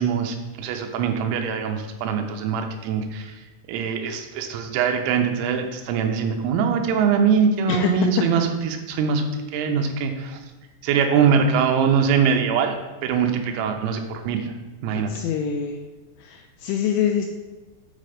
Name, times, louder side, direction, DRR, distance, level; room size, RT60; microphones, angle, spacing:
voice 1, 0.0-3.4 3.7-10.4 10.8-14.5 14.8-15.1, right 6 dB, 90° right, 4 dB, 3.5 m, -22 dB
voice 2, 15.1-15.8 16.2-17.3, left 8 dB, 85° left, 3 dB, 2.7 m, -24 dB
8.9 x 4.2 x 5.1 m, 1.2 s
omnidirectional pair, 6.0 m